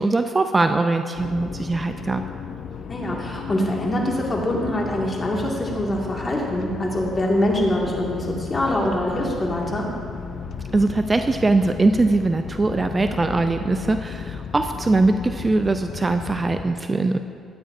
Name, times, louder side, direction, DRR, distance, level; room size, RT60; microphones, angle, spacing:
voice 1, 0.0-2.2 10.7-17.2, right 3 dB, 25° right, 7 dB, 0.4 m, -21 dB
sound 1, 1.1-16.6, left 6 dB, 60° left, 0.5 m, -35 dB
voice 2, 2.9-9.9, left 1 dB, 30° left, -2 dB, 2.0 m, -24 dB
13.0 x 9.2 x 2.6 m, 2.2 s
cardioid pair, 80°, 0 cm